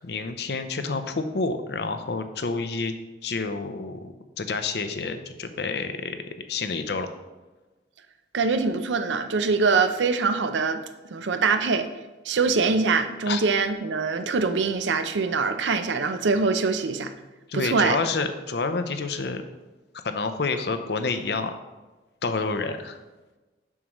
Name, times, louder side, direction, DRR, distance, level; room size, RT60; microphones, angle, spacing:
voice 1, 0.0-2.9 3.2-7.1 13.3-13.4 17.5-19.4 20.0-21.5 22.2-23.0, left 4 dB, 65° left, 8 dB, 0.6 m, -29 dB
voice 2, 8.3-10.8 11.1-11.9 12.3-17.1 17.5-18.0, right 4 dB, 85° right, 9 dB, 0.5 m, -23 dB
7.2 x 6.4 x 3.0 m, 1.2 s
head